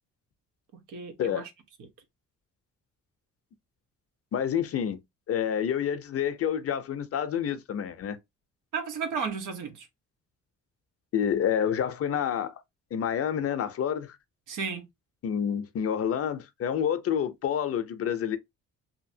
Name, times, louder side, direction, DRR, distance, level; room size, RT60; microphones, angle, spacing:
voice 1, 0.9-1.5 1.8-1.9 8.7-9.9 14.5-14.9, right 5 dB, 85° right, 0.9 m, -33 dB
voice 2, 4.3-5.0 5.3-8.2 11.1-12.5 12.9-14.2 15.2-18.4, left 8 dB, 50° left, 0.6 m, -28 dB
2.8 x 2.6 x 2.6 m
cardioid pair, 90°, 30 cm